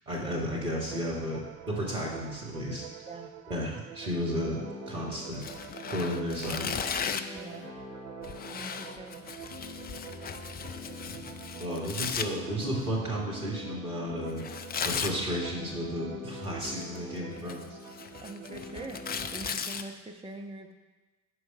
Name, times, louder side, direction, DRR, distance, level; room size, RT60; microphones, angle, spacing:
voice 1, 0.1-1.4 1.7-2.9 3.5-4.6 4.9-5.4 5.9-6.7 11.0-11.2 11.6-14.4 14.8-17.8, equal, 85° right, -4 dB, 2.0 m, -33 dB
sound 1, 0.9-19.6, right 11 dB, 60° right, 0.7 m, -47 dB
sound 2, 4.4-19.3, left 4 dB, 65° left, 1.8 m, -46 dB
Tearing, 5.4-7.4 8.2-12.3 14.4-15.2 16.4-17.0 17.4-19.8, left 7 dB, 20° left, 0.5 m, -36 dB
voice 2, 7.3-7.7 8.5-9.2 11.6-11.9 18.2-20.7, right 2 dB, 15° right, 4 dB, 0.9 m, -44 dB
11.5 x 4.9 x 5.5 m, 1.2 s
figure-of-eight pair, 55°, 44 cm